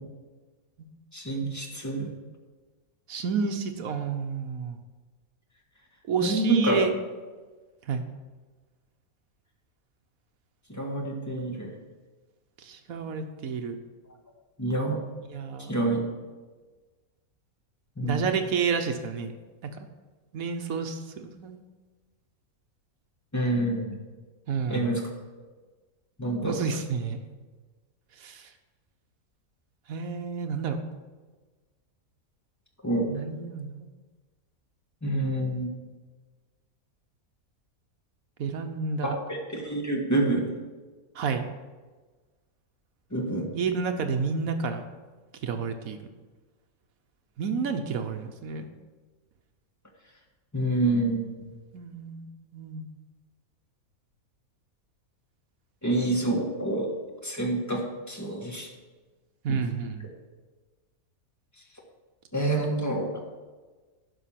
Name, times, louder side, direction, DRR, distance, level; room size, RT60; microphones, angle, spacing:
voice 1, 1.1-2.1 6.2-6.8 10.7-11.7 14.6-15.0 15.7-16.0 18.0-18.2 23.3-24.0 24.7-25.0 26.2-26.6 32.8-33.1 35.0-35.7 39.0-40.5 43.1-43.6 50.5-51.4 55.8-56.9 57.2-58.7 59.5-59.6 62.3-63.1, right 2 dB, 10° left, 0 dB, 1.5 m, -27 dB
voice 2, 3.1-4.8 6.1-6.9 7.9-8.0 12.6-13.8 15.3-15.7 18.0-19.3 19.6-19.9 20.3-21.6 24.5-25.0 26.4-27.2 28.2-28.5 29.9-30.8 33.1-33.9 38.4-39.1 41.1-41.4 43.5-44.9 45.4-46.0 47.4-48.7 51.7-52.3 52.5-52.8 59.4-60.0, right 5 dB, 70° right, 7 dB, 1.3 m, -30 dB
11.0 x 5.6 x 5.8 m, 1.3 s
omnidirectional pair, 1.5 m